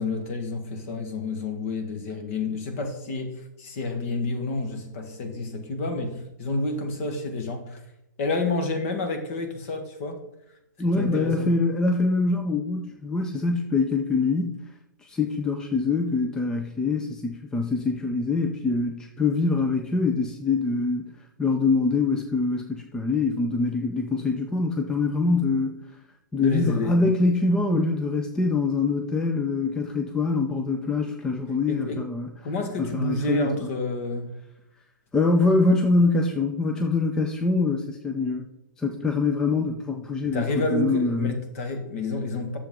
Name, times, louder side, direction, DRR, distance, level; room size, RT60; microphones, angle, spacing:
voice 1, 0.0-7.8 8.2-10.2 11.0-11.5 26.4-27.0 31.7-32.0 32.4-34.3 40.2-42.6, left 2 dB, 45° left, 6 dB, 1.6 m, -29 dB
voice 2, 10.8-14.6 15.0-21.1 21.4-25.8 26.3-32.3 32.8-33.7 35.1-38.5 38.8-41.3, left 3 dB, 5° left, 3 dB, 0.4 m, -24 dB
10.0 x 6.9 x 3.7 m, 0.85 s
hypercardioid pair, 155°, 11 cm